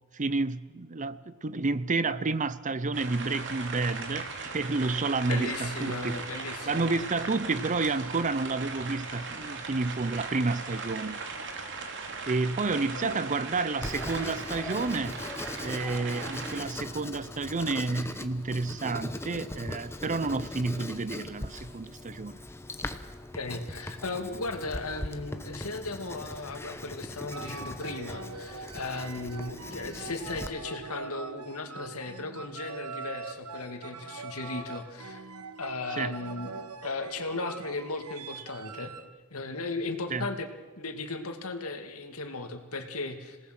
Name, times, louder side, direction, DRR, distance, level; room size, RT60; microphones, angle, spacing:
voice 1, 0.1-6.2 6.7-11.2 12.3-15.2 15.6-22.4 36.0-36.2 40.1-40.3, right 3 dB, 35° right, 0.7 m, -30 dB
sound 1, 2.9-16.6, right 4 dB, 55° right, 2.8 m, -38 dB
voice 2, 5.3-6.9 12.9-13.2 23.3-35.2 35.6-38.9 39.3-40.5 40.8-43.4, left 3 dB, 75° left, 2.3 m, -36 dB
Writing, 13.8-30.5, left 1 dB, 10° left, 1.1 m, -40 dB
sound 2, 27.3-39.1, right 4 dB, 90° right, 1.2 m, -42 dB
27.5 x 18.5 x 6.1 m
head